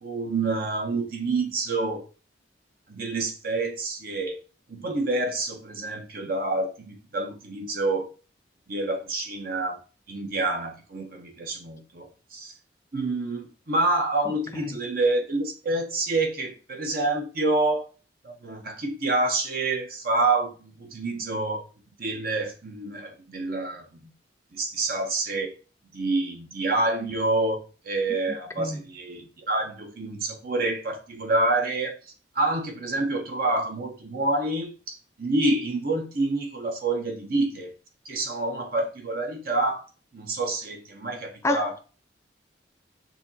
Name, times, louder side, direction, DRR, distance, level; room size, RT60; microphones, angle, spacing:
voice 1, 0.0-2.0 2.9-4.4 4.7-8.1 8.7-9.8 10.1-12.5 12.9-17.9 18.2-21.6 22.0-24.1 24.5-25.5 25.9-27.6 27.8-31.9 32.3-37.7 38.0-39.8 40.1-41.8, right 2 dB, 50° right, 0.8 m, -27 dB
voice 2, 41.4-41.8, left 2 dB, 15° left, 0.3 m, -28 dB
6.7 x 2.9 x 2.8 m
head